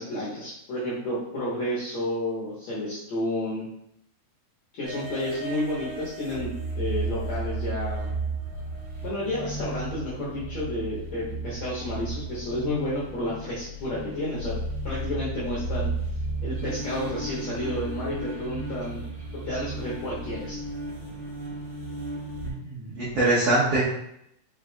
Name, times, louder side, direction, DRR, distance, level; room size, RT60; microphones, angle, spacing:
voice 1, 0.0-3.7 4.8-8.1 9.0-14.6 14.8-15.9 16.4-19.0 19.4-20.6, left 1 dB, 70° left, -7 dB, 1.7 m, -31 dB
sound 1, 4.8-22.5, right 2 dB, 50° right, 1.5 m, -34 dB
voice 2, 22.4-23.9, right 2 dB, 75° right, -9 dB, 1.4 m, -24 dB
4.9 x 4.8 x 2.2 m, 0.76 s
omnidirectional pair, 4.5 m